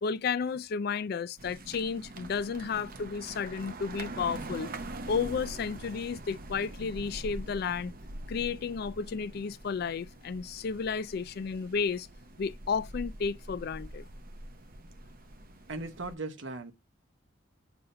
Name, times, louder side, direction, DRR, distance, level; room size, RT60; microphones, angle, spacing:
voice 1, 0.0-4.7 5.1-7.9 8.3-12.1 12.4-14.1, left 5 dB, 50° left, 0.4 m, -32 dB
sound 1, 1.4-16.2, right 1 dB, 45° right, 0.7 m, -44 dB
voice 2, 15.7-16.7, right 3 dB, 70° right, 0.9 m, -38 dB
7.0 x 2.6 x 5.5 m
head